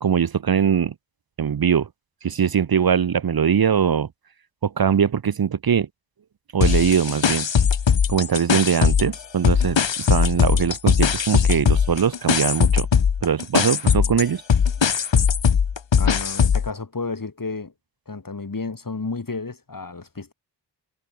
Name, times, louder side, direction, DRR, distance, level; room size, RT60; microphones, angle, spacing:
voice 1, 0.0-0.9 1.4-1.9 2.2-4.1 4.6-5.9 6.5-7.5 8.1-9.8 10.1-12.9 13.2-14.4, right 7 dB, 55° right, 0.8 m, -21 dB
sound 1, 6.6-9.2 9.4-16.7, left 7 dB, 80° left, 2.0 m, -20 dB
voice 2, 15.9-17.7 18.1-20.3, left 3 dB, 50° left, 6.8 m, -32 dB
wide cardioid pair, 80°, 44 cm